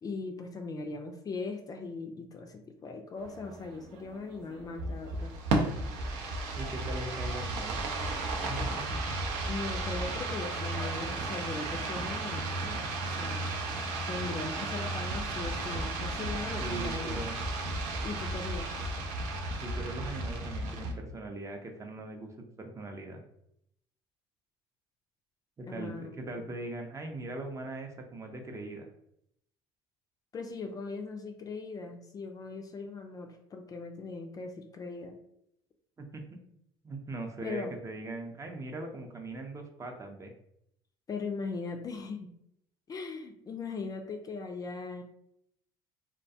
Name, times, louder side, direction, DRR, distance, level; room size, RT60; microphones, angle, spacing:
voice 1, 0.0-5.3 9.5-13.5 14.1-17.1 18.0-18.7 25.7-26.4 30.3-35.1 37.4-37.8 41.1-42.3 42.9-45.0, left 4 dB, 30° left, 4 dB, 0.4 m, -39 dB
sound 1, 3.2-20.9, right 2 dB, 70° right, 0.5 m, -34 dB
voice 2, 6.5-7.8 8.4-9.2 16.3-17.4 19.6-23.2 25.6-28.9 36.0-36.4 36.8-40.3, right 2 dB, 25° right, 3 dB, 0.5 m, -40 dB
2.3 x 2.2 x 2.6 m, 0.75 s
supercardioid pair, 80°, 12 cm